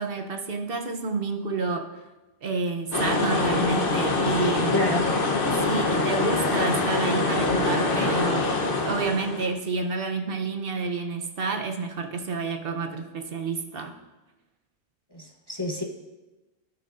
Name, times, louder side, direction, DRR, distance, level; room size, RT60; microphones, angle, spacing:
voice 1, 0.0-2.0 2.4-4.8 5.5-8.5 8.8-13.9, right 4 dB, 60° right, 4 dB, 0.9 m, -29 dB
sound 1, 2.9-9.5, left 3 dB, 55° left, 1.1 m, -24 dB
voice 2, 4.7-5.1 15.1-15.8, left 2 dB, 25° left, -1 dB, 0.7 m, -28 dB
16.5 x 5.9 x 2.5 m, 1.1 s
omnidirectional pair, 1.1 m